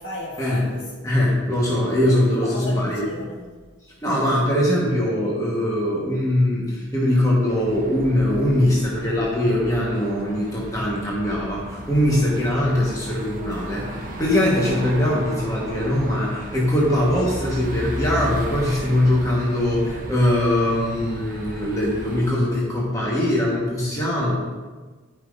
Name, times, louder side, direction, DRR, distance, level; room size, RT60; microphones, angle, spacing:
voice 1, 0.0-1.1 2.0-3.4, left 1 dB, 60° left, -3 dB, 1.8 m, -35 dB
voice 2, 1.0-3.1 4.0-13.9 14.2-24.3, left 1 dB, 15° left, -5 dB, 1.3 m, -21 dB
sound 1, 7.5-22.3, right 1 dB, 40° right, 0.9 m, -35 dB
12.5 x 5.7 x 2.6 m, 1.3 s
head